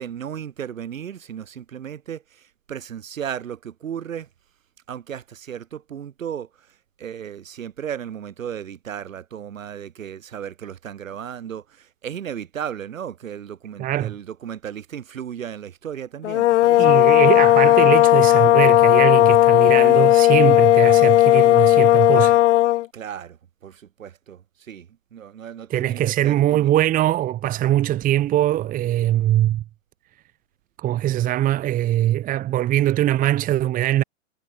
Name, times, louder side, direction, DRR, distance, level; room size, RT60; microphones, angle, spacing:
voice 1, 0.0-4.3 4.9-16.9 22.9-26.7, right 9 dB, 75° right, 6.6 m, -35 dB
voice 2, 13.8-14.1 16.8-22.4 25.7-29.6 30.8-34.0, right 13 dB, 20° right, 1.3 m, -21 dB
sound 1, 16.2-22.9, left 15 dB, 65° left, 0.6 m, -15 dB
hypercardioid pair, 130°, 40 cm